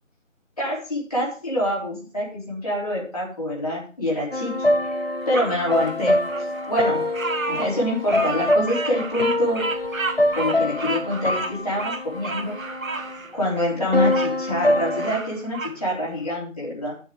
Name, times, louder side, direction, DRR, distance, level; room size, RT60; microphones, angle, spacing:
voice 1, 0.6-4.7 5.3-6.2 6.7-7.0 7.5-9.6 10.3-12.6 13.3-16.9, left 1 dB, 30° left, -6 dB, 4.0 m, -26 dB
sound 1, 4.3-13.1 13.9-15.1, left 1 dB, 50° left, 0.5 m, -25 dB
Bird vocalization bird call bird song, 5.3-14.3 14.8-15.8, right 3 dB, 80° right, 1.2 m, -32 dB
9.8 x 7.2 x 4.8 m, 0.38 s
figure-of-eight pair, 175°, 40 cm